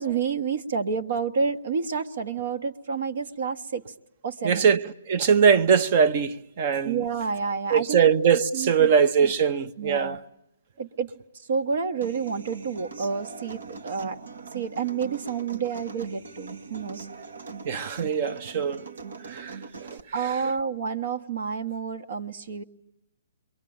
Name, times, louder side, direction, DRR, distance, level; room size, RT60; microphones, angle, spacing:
voice 1, 0.0-3.9 4.2-4.7 6.8-8.1 8.5-8.9 9.2-9.3 9.8-10.2 10.8-11.1 11.5-14.2 14.5-17.0 20.1-22.6, right 5 dB, 65° right, 1.4 m, -29 dB
voice 2, 4.4-7.0 7.7-10.3 17.6-18.8 19.2-20.0, right 7 dB, 45° right, 1.0 m, -22 dB
Human voice / Acoustic guitar, 12.0-20.0, right 4 dB, 80° right, 1.6 m, -41 dB
28.0 x 23.0 x 8.8 m
hypercardioid pair, 145°, 0 cm